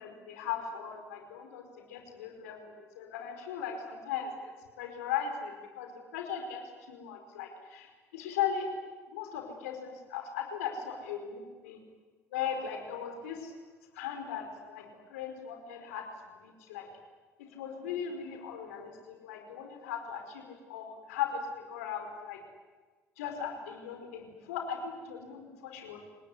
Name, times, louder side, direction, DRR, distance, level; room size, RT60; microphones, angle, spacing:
voice 1, 0.0-1.6 1.9-4.5 4.8-8.7 9.1-11.8 12.3-13.5 13.9-16.1 16.4-16.9 17.4-22.4 23.2-26.0, left 8 dB, 85° left, 4 dB, 5.0 m, -38 dB
29.5 x 19.5 x 9.8 m, 1.3 s
hypercardioid pair, 65°, 8 cm